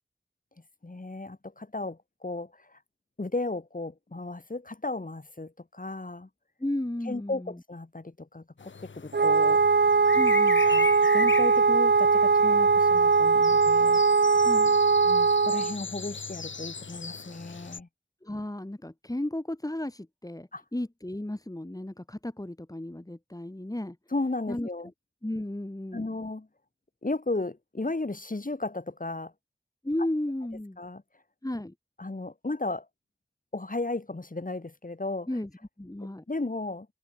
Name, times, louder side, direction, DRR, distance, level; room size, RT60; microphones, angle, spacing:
voice 1, 0.8-2.8 3.2-6.3 7.1-9.9 10.7-10.9 11.1-14.0 15.1-17.9 20.5-20.6 24.1-24.9 25.9-26.5 27.0-29.3 30.8-31.0 32.0-32.9 33.5-35.3 36.3-36.9, left 2 dB, 45° left, 6.8 m, -34 dB
voice 2, 6.6-7.6 10.1-10.7 14.4-14.8 18.2-24.0 24.5-24.9 25.2-26.1 29.8-30.8 31.4-31.7 35.3-35.5 35.8-36.2, left 1 dB, 20° left, 3.2 m, -34 dB
sound 1, 8.6-17.8, left 5 dB, 85° left, 1.6 m, -38 dB
Wind instrument woodwind instrument, 9.1-15.8, right 4 dB, 65° right, 1.3 m, -21 dB
cardioid pair, 45°, 19 cm